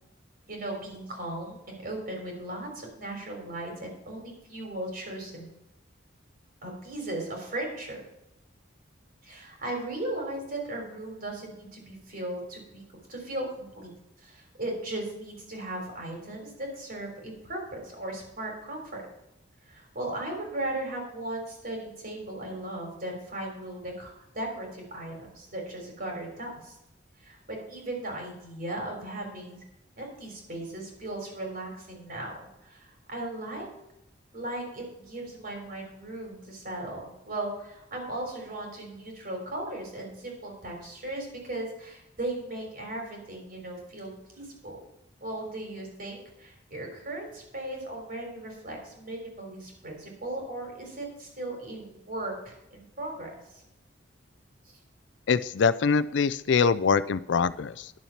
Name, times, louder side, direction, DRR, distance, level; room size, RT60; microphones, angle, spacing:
voice 1, 0.5-5.5 6.6-8.0 9.2-12.8 13.1-19.0 19.7-26.8 27.2-29.6 30.0-33.7 34.3-44.8 45.2-53.6 54.7-54.8, right 1 dB, 50° right, 1 dB, 3.7 m, -37 dB
voice 2, 55.3-57.9, left 5 dB, 65° left, 15 dB, 0.4 m, -24 dB
10.5 x 7.1 x 5.8 m, 0.87 s
head